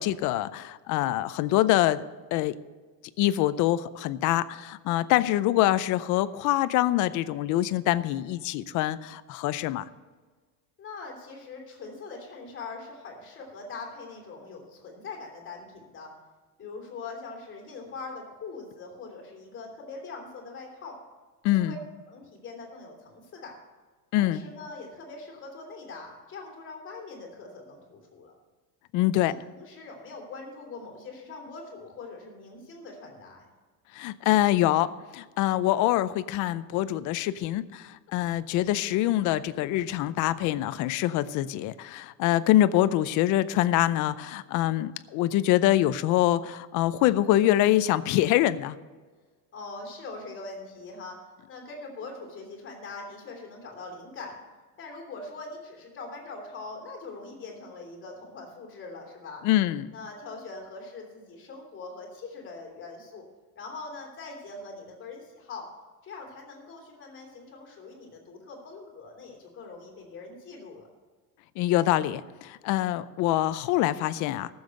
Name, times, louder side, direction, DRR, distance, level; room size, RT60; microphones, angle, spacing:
voice 1, 0.0-2.0 2.3-2.6 3.2-9.9 21.4-21.7 24.1-24.4 28.9-29.3 33.9-48.8 59.4-59.9 71.6-74.5, left 14 dB, 45° left, 15 dB, 0.5 m, -25 dB
voice 2, 10.8-16.1 16.6-21.0 21.4-21.8 22.1-23.6 24.2-28.4 29.1-33.5 49.5-51.2 51.5-54.4 54.8-59.4 59.9-63.2 63.5-65.7 66.0-70.9, left 3 dB, 25° left, 0 dB, 2.9 m, -42 dB
14.5 x 7.2 x 6.4 m, 1.4 s
cardioid pair, 165°, 43 cm